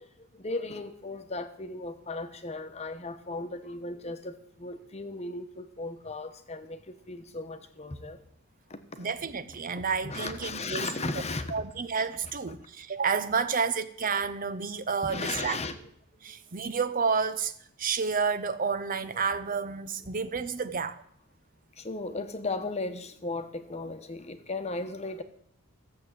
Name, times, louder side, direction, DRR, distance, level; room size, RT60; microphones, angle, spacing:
voice 1, 0.0-8.2 8.7-9.1 9.8-11.5 15.0-15.8 16.3-16.4 21.8-25.2, left 3 dB, 30° left, 1.1 m, -36 dB
voice 2, 9.0-10.9 11.5-15.6 16.2-17.5 17.8-21.0, right 5 dB, 40° right, 0.7 m, -30 dB
14.5 x 7.7 x 7.6 m
head